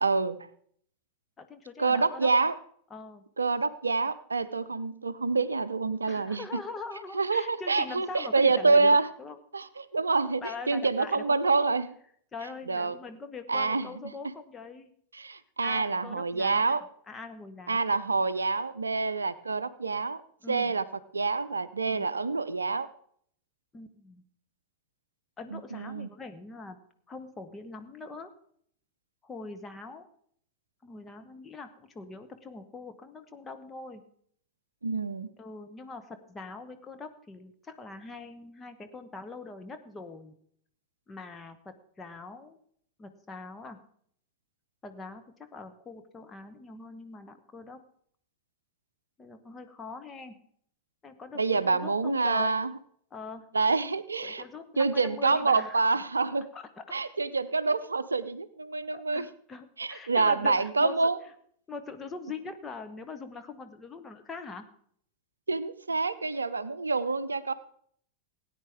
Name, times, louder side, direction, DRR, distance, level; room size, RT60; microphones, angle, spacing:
voice 1, 0.0-0.4 1.8-2.5 3.4-6.5 7.1-9.1 9.5-11.9 12.7-13.0 13.5-13.9 15.1-16.8 17.7-20.2 20.5-20.8 21.1-22.9 25.5-26.1 34.8-35.3 51.4-52.7 53.5-54.4 54.8-56.5 56.9-59.3 59.8-61.2 65.5-67.5, right 4 dB, 75° right, 14 dB, 0.5 m, -27 dB
voice 2, 1.4-2.3 2.9-3.2 6.1-9.4 10.4-11.4 12.3-14.9 15.6-16.8 17.1-17.9 20.4-20.7 21.9-22.1 23.7-24.2 25.4-26.8 27.1-28.3 29.2-30.1 30.8-34.0 35.4-40.3 41.1-42.6 43.0-43.8 44.8-45.2 45.5-47.8 49.2-50.4 51.0-52.6 53.1-53.5 54.2-55.8 56.5-56.7 58.9-61.0 61.7-64.6, left 4 dB, 15° left, 6 dB, 1.2 m, -42 dB
18.0 x 9.3 x 3.6 m, 0.63 s
figure-of-eight pair, 90°, 0 cm